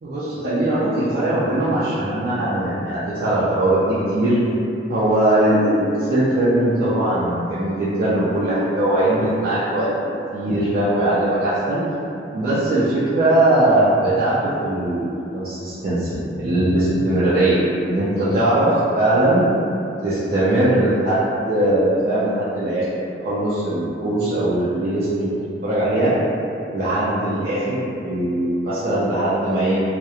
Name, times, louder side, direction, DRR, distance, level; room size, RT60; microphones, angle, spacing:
voice 1, 0.0-4.4 4.9-11.8 12.3-18.7 19.0-19.4 20.0-21.2 21.5-22.8 23.2-25.4 25.6-26.1 26.7-29.8, right 1 dB, 55° right, -11 dB, 0.4 m, -20 dB
2.8 x 2.0 x 2.3 m, 2.7 s
head